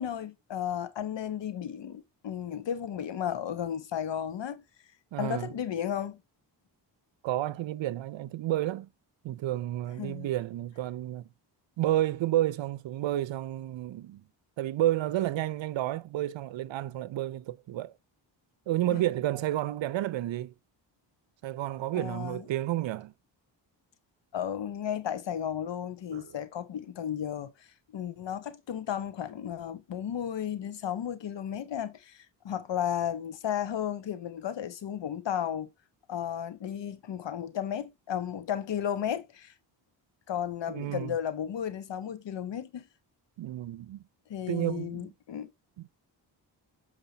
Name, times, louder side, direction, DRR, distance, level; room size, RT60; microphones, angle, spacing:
voice 1, 0.0-4.6 5.2-6.2 10.0-10.3 18.9-19.0 22.0-22.4 24.3-27.7 27.9-35.7 36.1-39.5 40.3-42.8 44.3-45.5, left 9 dB, 70° left, 1.2 m, -34 dB
voice 2, 5.1-5.5 7.2-8.9 9.2-11.3 11.8-14.2 14.6-17.9 18.7-20.5 21.4-23.1 26.1-26.3 40.7-41.1 43.4-44.0 44.5-45.1 45.8-45.9, right 14 dB, 75° right, 0.7 m, -31 dB
7.4 x 4.9 x 3.9 m
cardioid pair, 80°, 45 cm